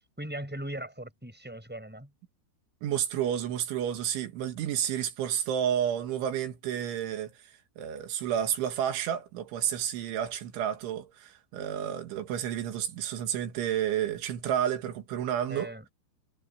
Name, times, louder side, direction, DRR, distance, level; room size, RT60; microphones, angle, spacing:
voice 1, 0.2-2.1 15.5-15.8, right 1 dB, ahead, 7.5 m, -39 dB
voice 2, 2.8-7.3 7.8-15.7, right 10 dB, 85° right, 4.3 m, -30 dB
omnidirectional pair, 5.3 m